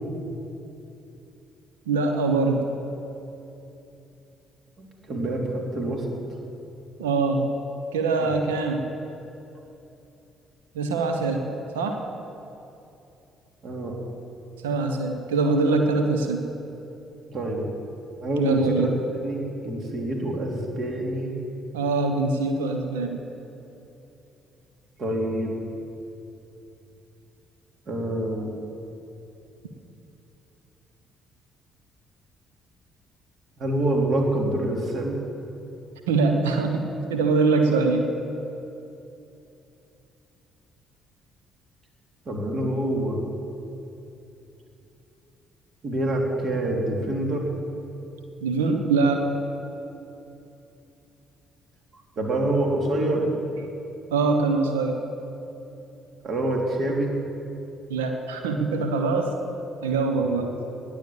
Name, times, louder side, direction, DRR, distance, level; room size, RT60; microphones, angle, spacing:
voice 1, 1.9-2.6 7.0-7.4 7.9-8.9 10.7-11.4 11.7-12.0 14.6-16.4 18.4-19.0 21.7-23.2 36.1-38.1 48.4-49.3 54.1-55.0 57.9-59.3 59.8-60.5, right 3 dB, 75° right, 5 dB, 1.1 m, -23 dB
voice 2, 4.8-6.0 13.6-13.9 17.3-17.7 18.2-18.9 19.2-21.4 25.0-25.5 27.9-28.6 33.6-35.2 42.3-43.2 45.8-47.5 52.2-53.3 56.2-57.1 60.1-60.5, right 1 dB, 45° right, 0 dB, 3.2 m, -26 dB
20.0 x 8.3 x 7.3 m, 2.9 s
figure-of-eight pair, 45°, 0 cm